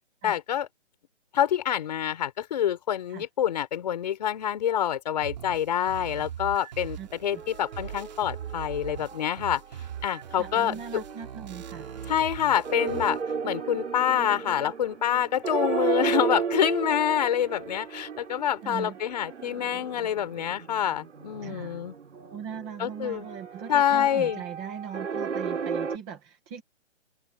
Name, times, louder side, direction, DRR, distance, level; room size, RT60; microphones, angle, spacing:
voice 1, 0.2-0.7 1.3-9.6 10.0-11.0 12.1-13.2 13.4-21.9 22.8-23.3 23.7-24.4, left 10 dB, 35° left, 4.0 m, -26 dB
sound 1, 5.2-13.2, right 9 dB, 35° right, 2.8 m, -41 dB
voice 2, 7.0-7.4 10.4-11.9 18.6-19.0 21.4-21.8 22.1-26.6, right 8 dB, ahead, 0.6 m, -39 dB
sound 2, 7.3-9.6 9.9-26.0, right 6 dB, 70° right, 3.5 m, -35 dB
hypercardioid pair, 165°, 37 cm